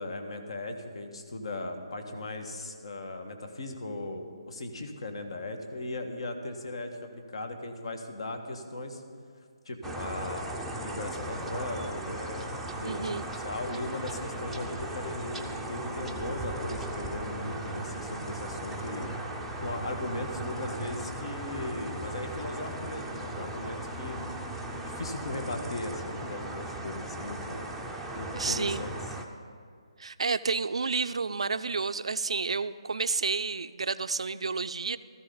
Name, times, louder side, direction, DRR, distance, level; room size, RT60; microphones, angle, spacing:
voice 1, 0.0-9.0 9.6-10.5 10.8-12.5 12.8-19.1 19.6-24.2 24.7-27.6 28.1-28.9, left 2 dB, 65° left, 6 dB, 1.6 m, -37 dB
sound 1, 9.8-29.2, right 1 dB, ahead, 0.6 m, -37 dB
voice 2, 12.8-13.3 28.4-28.8 30.0-35.0, right 4 dB, 80° right, 12 dB, 0.4 m, -30 dB
16.0 x 14.0 x 4.0 m, 2.2 s
hypercardioid pair, 160°, 3 cm